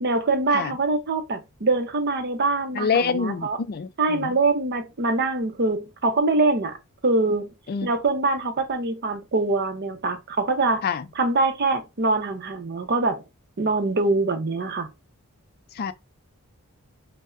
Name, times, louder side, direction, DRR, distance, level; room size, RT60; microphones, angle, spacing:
voice 1, 0.0-3.6 4.0-6.8 7.0-7.5 7.8-10.8 11.2-13.2 13.6-14.9, right 3 dB, 45° right, 0.7 m, -24 dB
voice 2, 2.7-4.3 7.7-7.9 10.8-11.1 15.7-15.9, left 5 dB, 45° left, 0.3 m, -26 dB
5.2 x 2.1 x 2.4 m
head